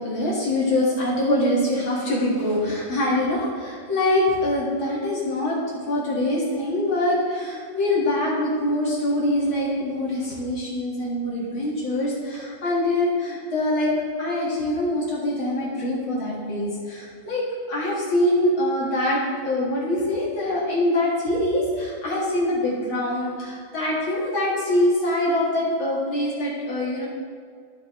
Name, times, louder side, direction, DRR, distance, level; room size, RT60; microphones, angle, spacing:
voice 1, 0.0-5.6 5.9-13.9 14.2-27.1, left 1 dB, 45° left, -6 dB, 2.2 m, -24 dB
14.5 x 5.3 x 3.1 m, 2.1 s
omnidirectional pair, 3.7 m